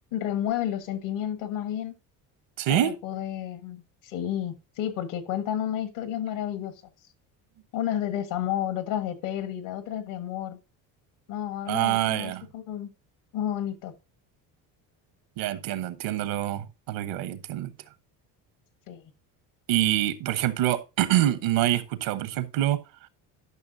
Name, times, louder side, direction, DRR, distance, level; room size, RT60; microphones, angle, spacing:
voice 1, 0.1-1.9 2.7-6.7 7.7-10.6 11.3-12.9 13.3-13.9 18.9-19.0, left 10 dB, 75° left, 1.5 m, -31 dB
voice 2, 2.6-2.9 11.7-12.4 15.4-17.7 19.7-22.8, right 13 dB, 75° right, 1.1 m, -26 dB
12.0 x 6.0 x 2.6 m
supercardioid pair, 80°, 45 cm